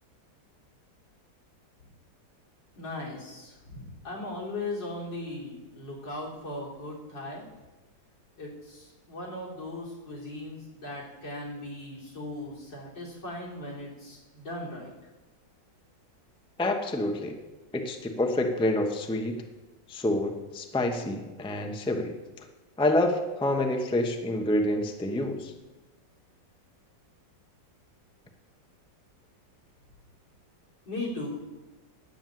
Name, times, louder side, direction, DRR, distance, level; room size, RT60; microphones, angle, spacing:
voice 1, 2.8-7.4 8.4-14.9 30.9-31.3, left 2 dB, 80° left, -2 dB, 4.4 m, -38 dB
voice 2, 16.6-17.3 17.7-19.4 19.9-22.1 22.8-25.5, left 1 dB, 5° left, 4 dB, 0.7 m, -27 dB
10.5 x 9.0 x 7.6 m, 1.2 s
omnidirectional pair, 2.0 m